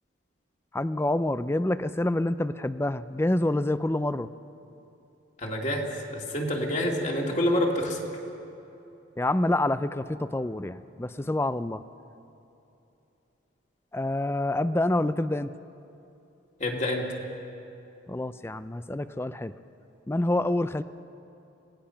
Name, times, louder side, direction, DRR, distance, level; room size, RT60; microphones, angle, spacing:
voice 1, 0.7-4.3 9.2-11.8 13.9-15.6 18.1-19.5 20.1-20.8, left 1 dB, 10° left, 13 dB, 0.4 m, -27 dB
voice 2, 5.4-8.0 16.6-17.1, left 1 dB, 35° left, -1 dB, 2.5 m, -27 dB
27.0 x 18.5 x 5.8 m, 2.8 s
head